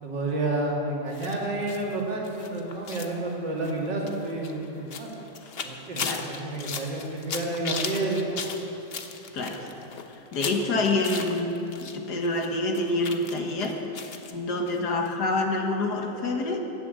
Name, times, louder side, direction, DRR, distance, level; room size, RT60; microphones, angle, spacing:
voice 1, 0.0-5.1 5.6-8.4, right 2 dB, 70° right, -2 dB, 3.1 m, -30 dB
sound 1, 1.1-12.0 12.2-14.3 14.7-14.8 15.1-15.2, left 5 dB, 45° left, 0.8 m, -37 dB
voice 2, 6.0-6.3 9.3-9.7 10.3-13.8 14.3-16.6, left 2 dB, 60° left, 3 dB, 1.8 m, -27 dB
16.0 x 10.0 x 7.7 m, 3.0 s
omnidirectional pair, 2.0 m